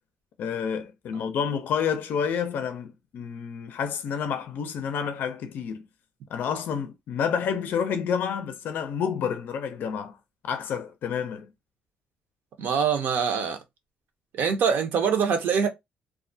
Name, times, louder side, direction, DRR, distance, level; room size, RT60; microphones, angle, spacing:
voice 1, 0.4-5.9 6.3-10.2 10.4-11.5, left 7 dB, 70° left, 0.4 m, -29 dB
voice 2, 12.6-13.6 14.4-15.7, right 6 dB, 70° right, 0.7 m, -24 dB
2.3 x 2.1 x 2.6 m
cardioid pair, 90°, 3 cm